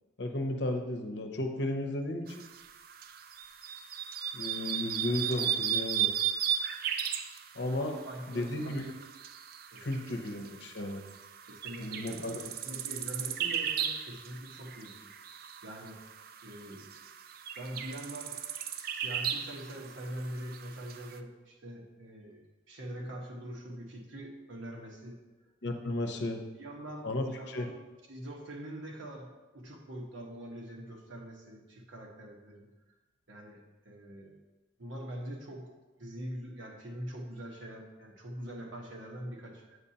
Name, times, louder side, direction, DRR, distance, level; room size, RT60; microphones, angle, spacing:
voice 1, 0.2-2.4 4.3-6.1 7.5-8.0 8.3-8.8 9.8-11.0 11.8-12.4 25.6-26.4 27.0-27.7, left 1 dB, 60° left, 4 dB, 0.7 m, -34 dB
sound 1, 2.3-21.2, right 9 dB, 50° right, 0.3 m, -36 dB
voice 2, 7.8-8.9 9.7-10.0 11.5-15.1 15.6-16.0 16.4-16.9 17.6-18.4 18.9-25.2 26.0-27.7 28.1-32.7 33.3-34.3 34.8-35.7 36.0-39.8, right 1 dB, 75° right, 0 dB, 1.3 m, -43 dB
8.0 x 6.7 x 2.8 m, 1.1 s
head